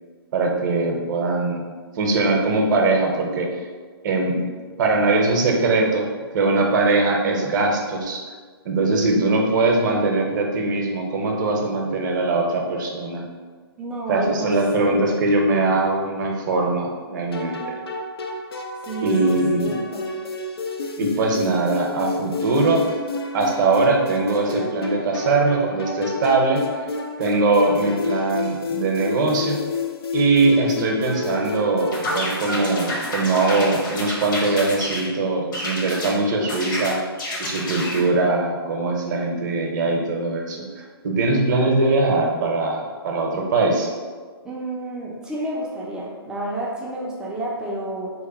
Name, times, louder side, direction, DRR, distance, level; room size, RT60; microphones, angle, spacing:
voice 1, 0.3-1.6 2.0-3.5 4.0-4.4 4.8-6.1 6.3-8.2 8.6-13.2 14.1-17.7 19.0-19.7 21.0-22.9 23.3-26.9 27.2-29.6 30.1-37.0 37.4-43.9, right 3 dB, 50° right, 1 dB, 0.7 m, -21 dB
voice 2, 13.8-15.2 18.9-20.1 44.4-48.1, right 1 dB, 5° right, -5 dB, 0.4 m, -30 dB
sound 1, 17.3-33.2, left 3 dB, 70° left, 0.5 m, -30 dB
sound 2, 31.9-35.1 35.5-36.1 36.5-38.1, left 1 dB, 50° left, 1.0 m, -29 dB
2.9 x 2.1 x 4.0 m, 1.5 s
figure-of-eight pair, 130°, 13 cm